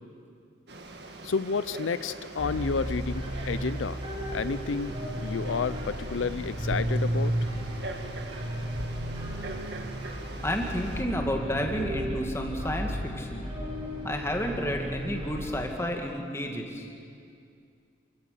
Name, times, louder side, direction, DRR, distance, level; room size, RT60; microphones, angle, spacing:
Frog, 0.7-11.0, right 2 dB, 60° right, 2.0 m, -41 dB
voice 1, 1.2-4.0 4.3-7.5, left 5 dB, 85° left, 15 dB, 0.5 m, -31 dB
sound 1, 2.4-15.7, equal, 30° right, 6.1 m, -34 dB
voice 2, 10.4-13.5 14.0-16.9, equal, 15° left, 2 dB, 2.0 m, -31 dB
27.0 x 17.0 x 6.9 m, 2.4 s
head